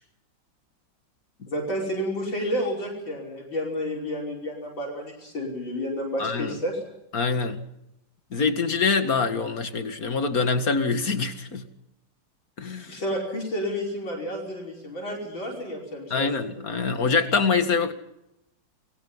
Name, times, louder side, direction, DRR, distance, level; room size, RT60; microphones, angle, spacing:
voice 1, 1.5-6.8 12.9-16.3 16.5-16.6, equal, 75° left, -2 dB, 6.2 m, -30 dB
voice 2, 6.2-6.5 7.1-7.6 8.3-11.6 12.6-13.0 16.1-17.9, left 4 dB, 50° left, 8 dB, 2.4 m, -25 dB
28.5 x 22.5 x 5.6 m, 0.86 s
omnidirectional pair, 2.1 m